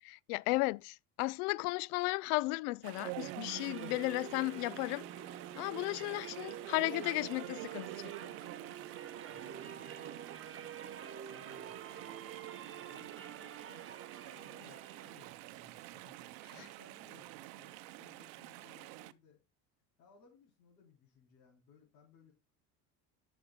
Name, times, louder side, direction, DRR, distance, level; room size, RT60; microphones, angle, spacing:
voice 1, 0.0-5.1 5.6-8.3, left 23 dB, 70° left, 0.5 m, -35 dB
Chatter / Stream, 2.8-19.1, right 18 dB, 65° right, 0.8 m, -48 dB
sound 1, 3.4-15.3, right 8 dB, 25° right, 1.0 m, -48 dB
voice 2, 9.3-10.3 10.8-11.7 12.9-19.4 20.0-22.3, left 6 dB, 85° left, 3.7 m, -64 dB
14.5 x 6.2 x 2.2 m
hypercardioid pair, 70°, 48 cm